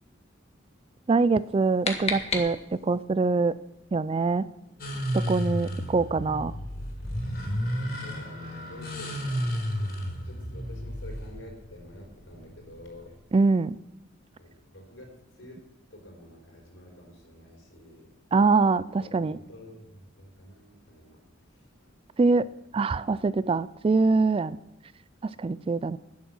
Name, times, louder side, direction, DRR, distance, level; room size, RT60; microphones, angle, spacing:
voice 1, 1.1-3.5 3.9-4.5 5.1-6.5 13.3-13.8 18.3-19.4 22.2-22.5 22.7-24.6 25.2-26.0, right 3 dB, 30° right, 17 dB, 0.3 m, -24 dB
sound 1, 1.3-3.0, left 4 dB, 35° left, 1.7 m, -33 dB
sound 2, 4.8-13.1, equal, 55° left, 3.8 m, -32 dB
voice 2, 5.6-5.9 7.8-13.1 14.4-15.6 15.9-18.1 19.0-21.2 21.5-21.9, left 1 dB, 80° left, 0 dB, 4.6 m, -49 dB
11.0 x 10.0 x 6.1 m, 0.97 s
head